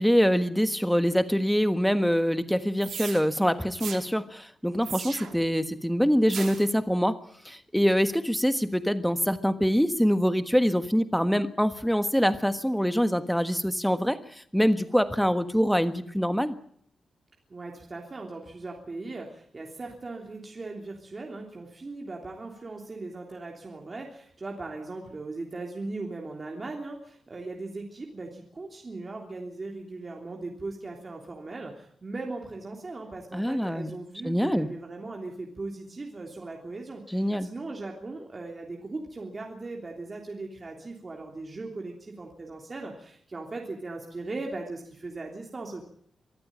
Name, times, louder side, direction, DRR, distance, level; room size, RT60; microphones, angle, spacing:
voice 1, 0.0-7.2 7.4-16.6 33.3-33.9 34.2-34.7 37.1-37.5, equal, ahead, 10 dB, 1.4 m, -24 dB
Laser Shots, 2.8-3.2 3.8-4.0 4.8-5.5 6.3-6.7, right 7 dB, 75° right, 2.8 m, -37 dB
voice 2, 17.5-45.8, right 3 dB, 30° right, 0 dB, 3.2 m, -38 dB
24.0 x 14.5 x 8.8 m, 0.63 s
wide cardioid pair, 135°, 0 cm